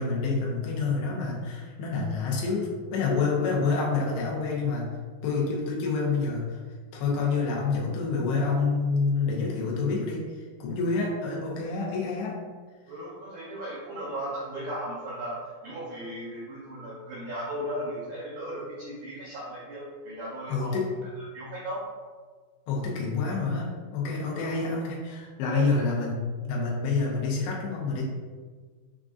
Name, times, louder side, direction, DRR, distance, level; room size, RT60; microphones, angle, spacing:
voice 1, 0.0-4.9 5.2-6.6 6.9-12.4 20.5-20.9 22.7-28.0, left 4 dB, 85° left, -3 dB, 2.9 m, -28 dB
voice 2, 12.9-20.8 21.2-21.8 24.4-24.5 25.5-25.7, right 1 dB, 85° right, -6 dB, 1.7 m, -36 dB
7.2 x 2.4 x 2.4 m, 1.5 s
omnidirectional pair, 4.5 m